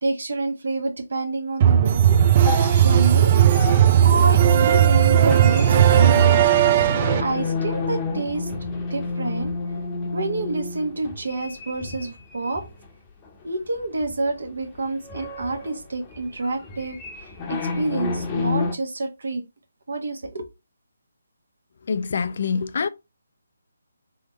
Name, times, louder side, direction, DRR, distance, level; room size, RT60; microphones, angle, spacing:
voice 1, 0.0-2.2 2.8-3.3 4.0-6.4 7.2-8.5 8.9-9.6 10.1-12.6 13.4-17.0 17.5-19.4 19.9-20.4, right 2 dB, 65° right, 1.2 m, -28 dB
sound 1, 1.6-7.2, right 10 dB, 35° right, 0.3 m, -16 dB
sound 2, 2.1-12.8 13.3-13.4 14.0-14.4 14.6-18.7, left 4 dB, 20° left, 0.7 m, -31 dB
voice 2, 21.9-22.9, left 5 dB, 50° left, 0.4 m, -25 dB
3.7 x 3.4 x 3.0 m
figure-of-eight pair, 145°, 0 cm